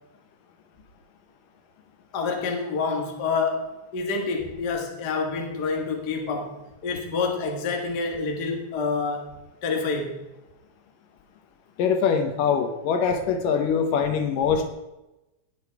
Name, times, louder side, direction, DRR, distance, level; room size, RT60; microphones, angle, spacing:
voice 1, 2.1-6.6 6.8-9.4 9.6-10.2, left 4 dB, 45° left, 2 dB, 1.3 m, -27 dB
voice 2, 11.8-14.7, left 6 dB, 70° left, 6 dB, 2.4 m, -23 dB
18.5 x 6.9 x 4.7 m, 0.98 s
omnidirectional pair, 4.3 m